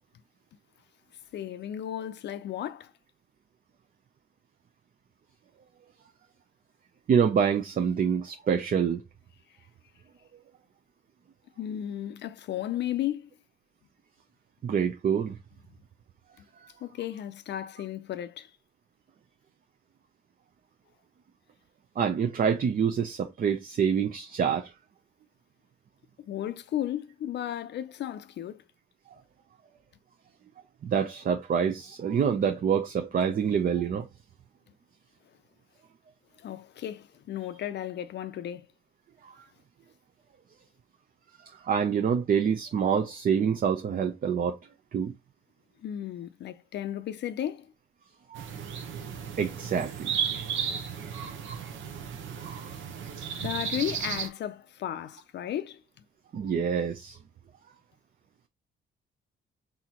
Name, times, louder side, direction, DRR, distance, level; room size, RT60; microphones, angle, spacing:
voice 1, 1.3-2.9 11.6-13.3 16.8-18.5 26.2-28.6 36.4-38.7 45.8-47.7 53.4-55.8, left 11 dB, 60° left, 0.5 m, -34 dB
voice 2, 7.1-9.0 14.6-15.4 22.0-24.7 30.8-34.1 41.6-44.6 44.9-45.1 48.3-48.4 49.4-50.5 52.4-52.7 56.3-57.2, right 7 dB, 45° right, 0.6 m, -26 dB
sound 1, 48.3-54.3, right 7 dB, 75° right, 0.9 m, -34 dB
4.2 x 3.8 x 2.9 m
cardioid pair, 90°, 20 cm